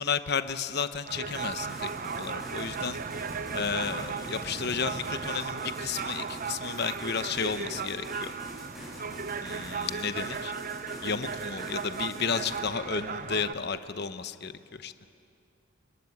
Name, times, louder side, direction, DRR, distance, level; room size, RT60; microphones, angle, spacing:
voice 1, 0.0-1.9 2.2-3.0 3.5-8.3 9.4-10.5 11.0-14.5 14.8-14.9, left 6 dB, 50° left, 11 dB, 0.9 m, -32 dB
sound 1, 1.1-13.5, right 5 dB, 40° right, 0.7 m, -36 dB
sound 2, 1.3-12.6, left 1 dB, ahead, 7.0 m, -45 dB
30.0 x 20.0 x 9.8 m, 2.6 s
head